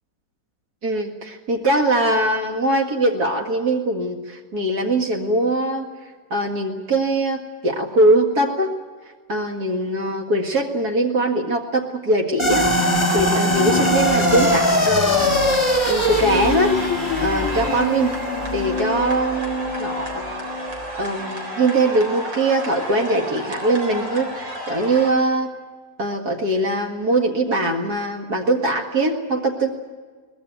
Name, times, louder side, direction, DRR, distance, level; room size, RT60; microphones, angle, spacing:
voice 1, 0.8-5.9 6.3-8.7 9.3-12.7 13.1-15.4 15.9-16.8 17.2-18.1 18.5-20.4 21.0-25.5 26.0-29.7, right 1 dB, 55° right, 2 dB, 2.4 m, -21 dB
sound 1, 12.4-20.9, left 1 dB, 15° left, 2.1 m, -21 dB
sound 2, 12.5-25.1, equal, 80° right, 4.6 m, -31 dB
23.0 x 19.5 x 9.2 m, 1.5 s
omnidirectional pair, 2.0 m